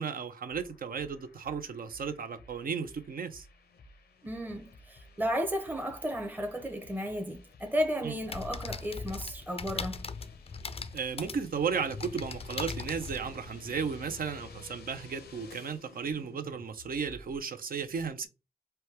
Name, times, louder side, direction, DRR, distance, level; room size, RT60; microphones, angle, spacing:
voice 1, 0.0-3.5 8.0-8.1 10.9-18.3, right 6 dB, 65° right, 0.6 m, -34 dB
sound 1, 0.5-17.4, left 4 dB, 85° left, 0.6 m, -53 dB
voice 2, 4.2-10.1, equal, 10° right, 0.7 m, -33 dB
sound 2, 8.2-13.8, left 4 dB, 35° left, 0.4 m, -40 dB
3.3 x 2.3 x 2.8 m
cardioid pair, 60°, 16 cm